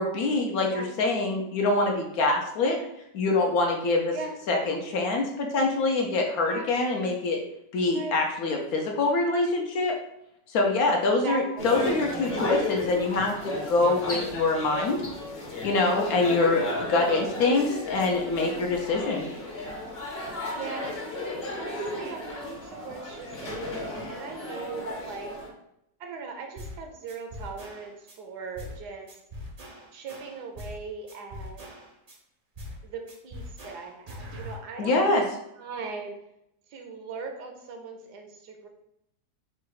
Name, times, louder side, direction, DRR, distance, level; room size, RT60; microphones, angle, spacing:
voice 1, 0.0-2.8 3.1-4.2 4.5-7.4 7.7-9.9 10.5-15.0 15.6-19.3 34.8-35.2, left 3 dB, 65° left, 1 dB, 1.0 m, -25 dB
voice 2, 11.2-11.8 18.5-18.6 20.6-20.9 21.5-25.3 26.0-29.1 29.9-31.7 32.8-35.2 35.6-36.2 36.7-38.7, right 4 dB, 75° right, 4 dB, 1.2 m, -39 dB
sound 1, 11.6-25.5, left 2 dB, 45° left, 1.0 m, -34 dB
sound 2, 26.6-26.8 27.1-28.2 28.6-28.8 29.1-30.8 31.1-32.2 32.6-32.8 33.1-34.6, left 1 dB, 45° right, 0.4 m, -41 dB
4.0 x 2.3 x 4.6 m, 0.80 s
omnidirectional pair, 1.8 m